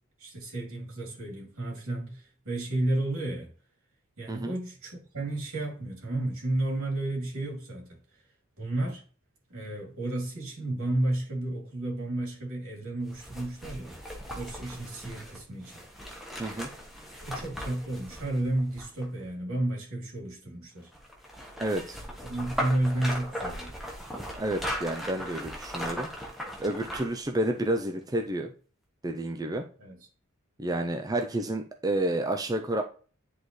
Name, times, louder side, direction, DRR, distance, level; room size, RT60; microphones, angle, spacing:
voice 1, 0.2-3.5 4.2-7.9 8.6-9.0 9.5-14.0 14.3-15.8 17.2-20.9 22.2-23.7 29.8-30.0, right 1 dB, 80° right, 3.0 m, -32 dB
sound 1, 13.1-19.3 20.9-27.2 27.6-27.7, equal, ahead, 1.2 m, -38 dB
voice 2, 16.4-16.7 21.6-22.0 24.4-26.1 26.6-28.5 29.0-29.6 30.6-32.8, right 1 dB, 15° right, 0.5 m, -30 dB
10.0 x 4.0 x 3.2 m
head